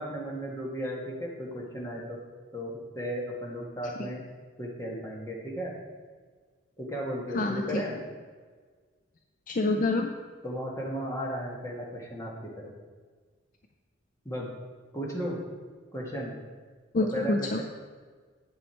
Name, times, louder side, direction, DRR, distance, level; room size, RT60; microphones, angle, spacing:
voice 1, 0.0-2.2 2.5-4.2 4.6-5.7 6.8-8.0 10.4-12.7 14.2-14.5 14.9-15.4 15.9-16.4 17.0-17.6, equal, 15° left, -3 dB, 1.6 m, -35 dB
voice 2, 7.3-7.8 9.5-10.1 16.9-17.6, left 2 dB, 40° left, 4 dB, 0.4 m, -27 dB
8.0 x 7.9 x 4.5 m, 1.5 s
head